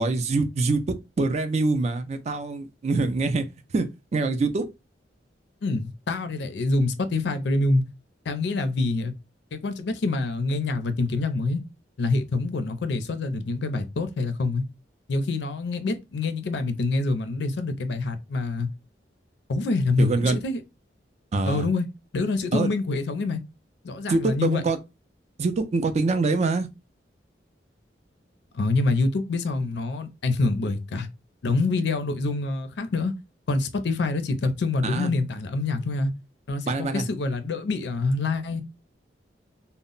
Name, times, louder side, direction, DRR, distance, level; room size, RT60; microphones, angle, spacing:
voice 1, 0.0-3.5 3.7-4.7 20.0-20.4 21.3-21.7 22.5-22.7 24.1-24.8 25.4-26.7 34.8-35.1 36.7-37.0, right 3 dB, 40° right, 0.3 m, -24 dB
voice 2, 5.6-7.8 8.3-9.1 9.5-11.6 12.0-14.6 15.1-18.7 19.5-20.6 21.5-21.8 22.1-23.4 23.8-24.6 28.5-31.1 31.4-33.1 33.5-36.1 36.5-38.6, left 3 dB, 65° left, 0.4 m, -26 dB
2.0 x 2.0 x 3.7 m
head